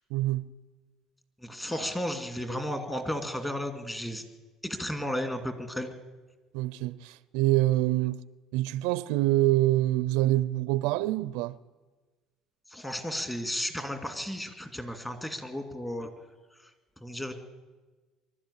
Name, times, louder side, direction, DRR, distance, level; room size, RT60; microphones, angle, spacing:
voice 1, 0.1-0.5 6.5-8.2 8.5-11.6, right 16 dB, 85° right, 0.6 m, -26 dB
voice 2, 1.4-4.2 4.6-5.9 12.7-16.1 17.0-17.3, left 1 dB, 10° left, 2.4 m, -33 dB
23.5 x 12.5 x 9.9 m
cardioid pair, 140°, 0 cm